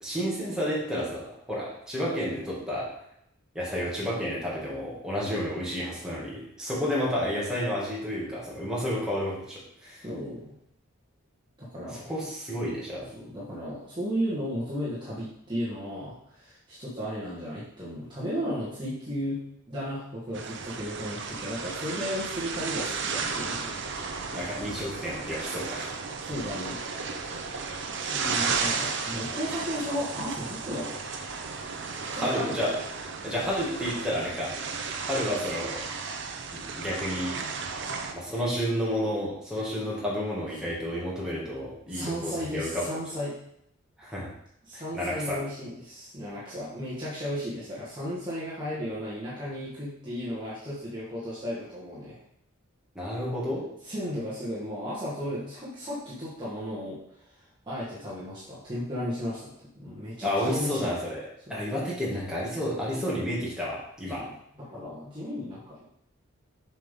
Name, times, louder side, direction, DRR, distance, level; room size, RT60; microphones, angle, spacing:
voice 1, 0.0-2.9 3.5-10.0 11.9-13.1 24.3-25.9 32.1-32.7 33.2-34.5 35.0-35.9 36.5-37.4 38.1-42.8 44.0-44.3 44.7-45.4 53.0-53.6 60.2-61.2 61.5-64.2, equal, 5° right, -7 dB, 2.1 m, -31 dB
voice 2, 10.0-10.5 11.6-12.0 13.1-23.7 26.2-26.8 28.1-31.0 32.0-32.6 41.9-43.4 44.6-52.2 53.8-57.0 57.7-60.9 61.5-61.6 64.2-65.8, equal, 20° right, -9 dB, 1.6 m, -34 dB
sound 1, 20.3-38.1, right 5 dB, 55° right, 0.7 m, -34 dB
7.2 x 5.7 x 3.7 m, 0.74 s
head